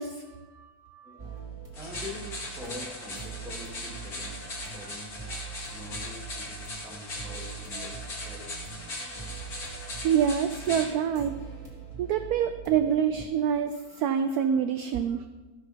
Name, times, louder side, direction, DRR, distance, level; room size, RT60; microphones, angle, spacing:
voice 1, 0.0-1.2 5.3-5.4 7.7-7.9 9.6-9.8 10.0-11.4 12.0-15.3, right 8 dB, 70° right, 8 dB, 0.9 m, -27 dB
voice 2, 1.0-8.5 12.8-12.9, left 1 dB, ahead, -2 dB, 1.5 m, -45 dB
sound 1, 1.2-13.3, right 6 dB, 20° right, 1.9 m, -43 dB
sound 2, 1.7-10.9, left 2 dB, 55° left, 2.3 m, -39 dB
13.0 x 5.6 x 5.7 m, 1.2 s
omnidirectional pair, 2.0 m